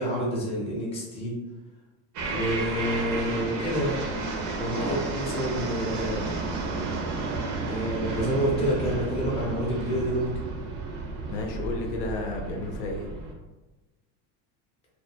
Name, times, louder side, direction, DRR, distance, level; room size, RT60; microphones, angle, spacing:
voice 1, 0.0-1.3 2.3-4.0 4.6-6.3 7.7-10.3, equal, 15° left, -4 dB, 0.5 m, -28 dB
sound 1, 2.1-13.3, right 3 dB, 40° right, 0.4 m, -32 dB
voice 2, 4.7-5.0 11.3-13.1, left 3 dB, 80° left, 2 dB, 0.6 m, -33 dB
2.2 x 2.1 x 2.7 m, 1.1 s
supercardioid pair, 130°, 47 cm